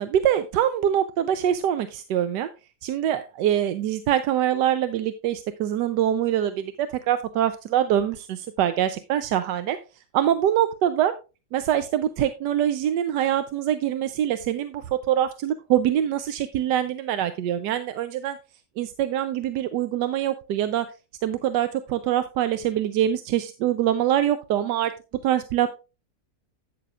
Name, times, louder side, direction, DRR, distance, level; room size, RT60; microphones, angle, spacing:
voice 1, 0.0-2.5 2.8-9.8 10.1-11.1 11.5-18.4 18.8-20.9 21.2-24.9 25.2-25.7, right 11 dB, 90° right, 10 dB, 1.2 m, -24 dB
11.5 x 8.6 x 2.4 m, 0.30 s
omnidirectional pair, 1.8 m